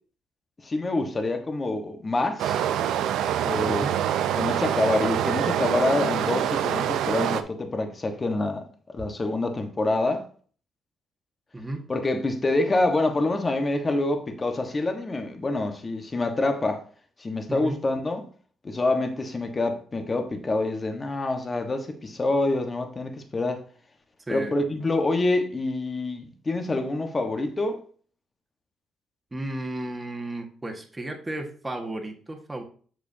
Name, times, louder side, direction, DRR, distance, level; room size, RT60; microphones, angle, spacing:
voice 1, 0.6-2.6 3.4-3.9 4.3-8.6 8.9-10.3 11.9-16.8 17.2-18.2 18.6-23.6 24.3-27.8, left 2 dB, 30° left, 1.4 m, -26 dB
Stream, 2.4-7.4, right 10 dB, 85° right, 0.6 m, -25 dB
voice 2, 3.6-4.0 11.5-11.8 17.5-17.8 24.3-24.6 29.3-32.6, right 1 dB, 15° right, 1.7 m, -33 dB
8.0 x 6.8 x 2.8 m
cardioid pair, 90°, 0 cm